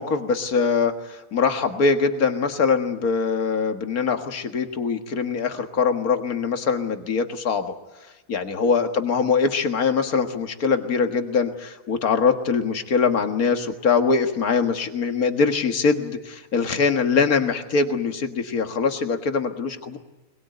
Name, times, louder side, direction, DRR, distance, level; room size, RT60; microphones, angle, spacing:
voice 1, 0.0-7.7 8.3-20.0, left 5 dB, 70° left, 7 dB, 2.2 m, -23 dB
23.0 x 20.5 x 9.2 m, 1.1 s
omnidirectional pair, 1.6 m